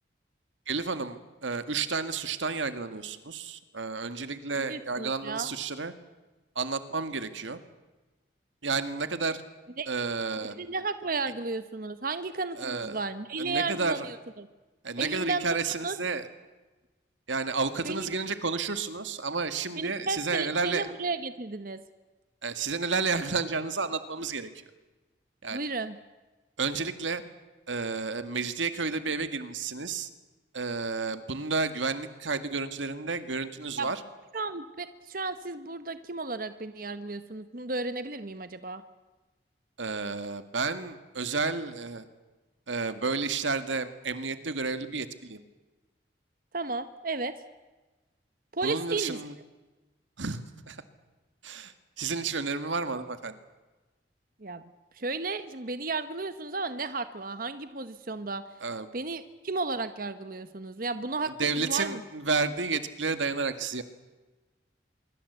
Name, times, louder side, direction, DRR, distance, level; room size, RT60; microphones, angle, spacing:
voice 1, 0.7-5.9 6.6-7.6 8.6-9.4 9.9-10.5 12.6-13.0 13.4-14.1 14.8-16.3 17.3-20.9 22.4-24.5 25.4-25.6 26.6-27.2 27.7-30.1 30.5-34.0 39.8-42.1 42.7-45.4 48.6-49.3 50.2-50.4 50.7-50.8 51.4-53.4 58.6-58.9 61.2-63.8, right 4 dB, 90° right, 10 dB, 2.0 m, -31 dB
voice 2, 4.6-5.5 9.8-9.9 10.5-14.5 15.0-15.4 15.8-16.0 17.8-18.1 19.8-21.8 25.5-26.0 33.8-33.9 34.3-38.8 46.5-47.4 48.5-49.2 54.4-54.7 54.9-58.5 58.9-62.0, right 3 dB, 50° right, 11 dB, 1.1 m, -33 dB
25.5 x 23.5 x 8.2 m, 1.2 s
head